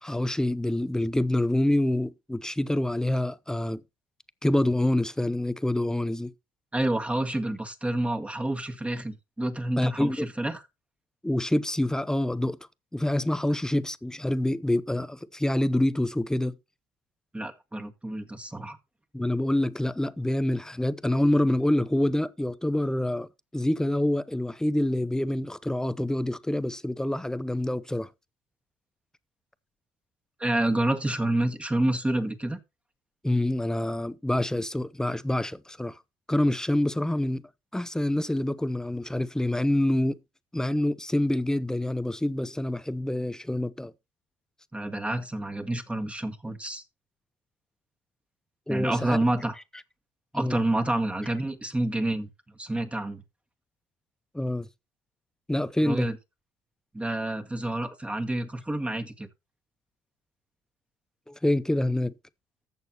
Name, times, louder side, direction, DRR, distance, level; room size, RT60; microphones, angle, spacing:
voice 1, 0.0-3.8 4.4-6.3 9.8-10.3 11.2-12.6 12.9-16.6 19.1-23.3 23.5-28.1 33.2-36.0 36.3-40.2 40.5-43.9 48.7-49.2 50.3-50.6 54.3-54.7 55.5-56.1 61.3-62.1, left 1 dB, 5° left, 0.7 m, -26 dB
voice 2, 6.7-10.6 17.3-18.8 30.4-32.6 44.7-46.8 48.7-49.6 50.3-52.3 52.6-53.2 55.8-56.2 56.9-59.3, right 1 dB, 10° right, 1.8 m, -28 dB
15.0 x 6.8 x 2.9 m
supercardioid pair, 80°, 11 cm